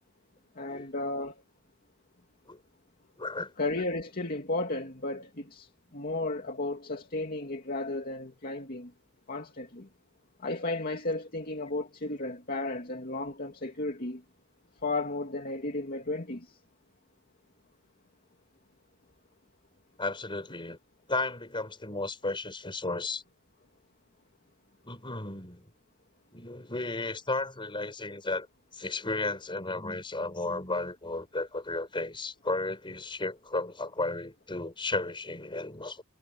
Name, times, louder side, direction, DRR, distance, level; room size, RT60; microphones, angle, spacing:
voice 1, 0.6-1.4 3.6-5.7 5.9-8.9 9.3-9.9 10.4-14.2 14.8-16.5, left 2 dB, 45° left, 2.6 m, -34 dB
voice 2, 3.2-3.5 20.0-20.8 21.1-23.2 24.8-25.7 26.3-28.5 28.7-36.0, left 2 dB, 25° left, 5.6 m, -34 dB
head